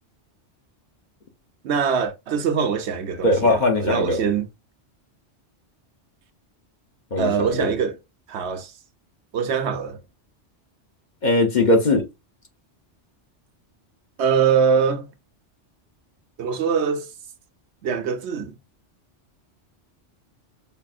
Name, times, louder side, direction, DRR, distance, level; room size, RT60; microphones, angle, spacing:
voice 1, 1.6-4.5 7.2-8.0 8.3-8.7 9.3-10.0 14.2-15.1 16.4-17.1 17.8-18.5, right 6 dB, 70° right, 0.9 m, -23 dB
voice 2, 3.2-4.2 7.1-7.6 11.2-12.1, left 2 dB, 45° left, 0.8 m, -19 dB
5.4 x 2.5 x 2.4 m
omnidirectional pair, 1.2 m